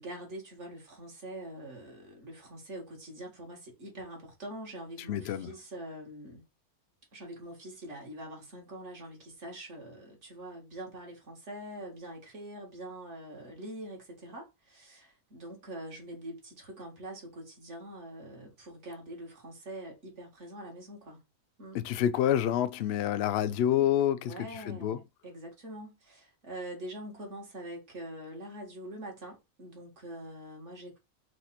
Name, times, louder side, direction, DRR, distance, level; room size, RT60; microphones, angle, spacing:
voice 1, 0.0-6.4 7.1-21.2 21.6-21.8 24.2-31.0, right 1 dB, 60° right, 2.0 m, -44 dB
voice 2, 5.1-5.5 21.7-25.0, left 11 dB, 65° left, 0.7 m, -28 dB
4.5 x 2.4 x 4.2 m
omnidirectional pair, 1.4 m